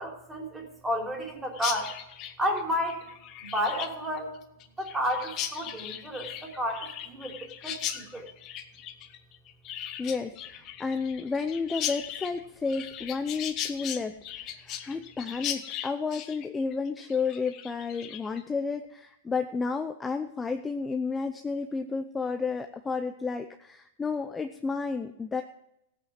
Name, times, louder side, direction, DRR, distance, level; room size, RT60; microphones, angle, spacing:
voice 1, 0.0-2.0 2.4-3.0 3.4-4.4 4.8-8.3, equal, 10° right, 1 dB, 3.6 m, -31 dB
Chirp tweet, 1.5-18.4, left 10 dB, 35° left, 1.3 m, -38 dB
voice 2, 10.0-14.1 14.8-25.4, left 4 dB, 15° left, 7 dB, 0.7 m, -31 dB
15.5 x 8.5 x 7.5 m, 0.83 s
hypercardioid pair, 125°, 0 cm